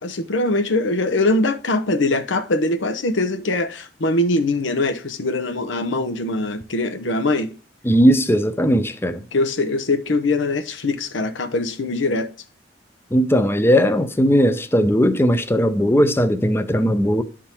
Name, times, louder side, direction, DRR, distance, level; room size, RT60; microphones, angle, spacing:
voice 1, 0.0-7.6 9.3-12.3, left 2 dB, 80° left, 0.8 m, -22 dB
voice 2, 7.9-9.2 13.1-17.2, equal, 15° left, 0.5 m, -18 dB
11.0 x 3.7 x 4.4 m
head